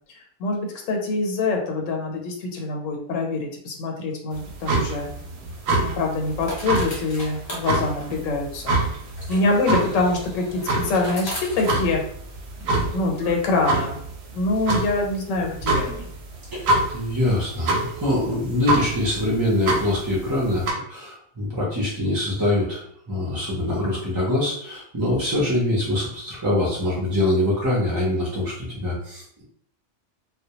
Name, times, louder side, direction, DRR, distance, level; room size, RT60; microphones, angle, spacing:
voice 1, 0.1-5.1 5.8-8.8 9.3-12.0 12.6-14.0 14.3-16.1, left 3 dB, 80° left, 2 dB, 0.9 m, -25 dB
sound 1, 4.3-20.7, right 2 dB, 65° right, 0.7 m, -27 dB
sound 2, 4.9-12.6, equal, 45° left, 0.3 m, -39 dB
voice 2, 16.5-29.4, left 1 dB, 30° right, -5 dB, 0.4 m, -24 dB
2.1 x 2.0 x 2.8 m, 0.65 s
omnidirectional pair, 1.3 m